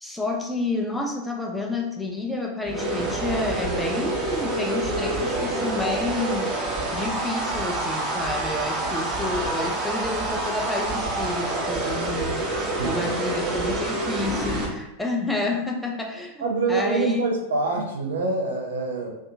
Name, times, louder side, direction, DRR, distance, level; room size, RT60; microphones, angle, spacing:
voice 1, 0.0-6.5 6.9-12.4 12.8-17.2, left 2 dB, 5° left, 0 dB, 0.4 m, -29 dB
sound 1, 2.7-14.7, right 2 dB, 15° right, 0.9 m, -27 dB
voice 2, 12.6-13.1 16.4-19.2, right 3 dB, 65° right, 1 dB, 0.5 m, -26 dB
2.6 x 2.3 x 2.4 m, 0.90 s
figure-of-eight pair, 90°, 0 cm